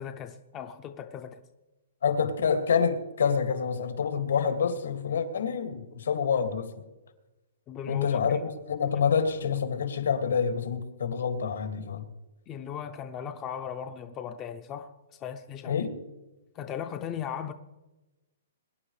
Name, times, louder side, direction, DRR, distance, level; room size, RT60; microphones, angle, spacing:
voice 1, 0.0-1.4 7.7-8.4 12.5-14.9 15.2-15.8 16.6-17.5, left 8 dB, 15° left, 0.5 m, -37 dB
voice 2, 2.0-6.8 7.9-12.1 15.6-16.0, left 6 dB, 80° left, 2.1 m, -27 dB
23.5 x 10.5 x 3.2 m
hypercardioid pair, 180°, 0 cm